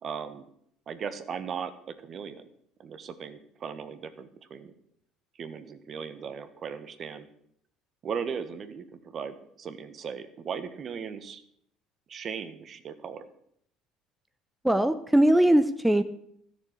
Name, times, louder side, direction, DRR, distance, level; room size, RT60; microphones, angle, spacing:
voice 1, 0.0-0.4 0.9-2.5 2.8-4.7 5.4-7.3 8.0-11.4 12.1-13.3, right 6 dB, 45° right, 10 dB, 1.4 m, -37 dB
voice 2, 14.6-16.0, right 1 dB, 5° right, 9 dB, 0.8 m, -21 dB
13.0 x 6.9 x 8.3 m, 0.70 s
supercardioid pair, 80°, 0 cm